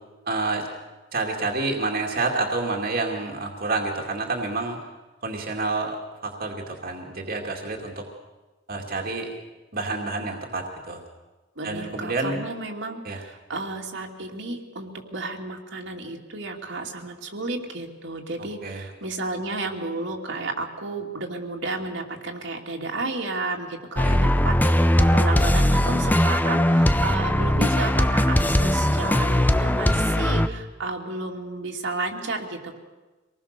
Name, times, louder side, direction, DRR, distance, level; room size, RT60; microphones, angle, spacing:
voice 1, 0.3-0.7 1.1-4.8 5.2-8.1 8.7-9.3 9.7-11.0 11.6-12.4 13.0-13.2 18.6-18.9 24.0-24.2, right 3 dB, 50° right, 1 dB, 2.4 m, -28 dB
voice 2, 11.6-32.8, right 3 dB, 70° right, 1 dB, 2.7 m, -32 dB
sound 1, 24.0-30.5, left 1 dB, 10° left, 0.7 m, -20 dB
25.5 x 19.5 x 6.8 m, 1.2 s
head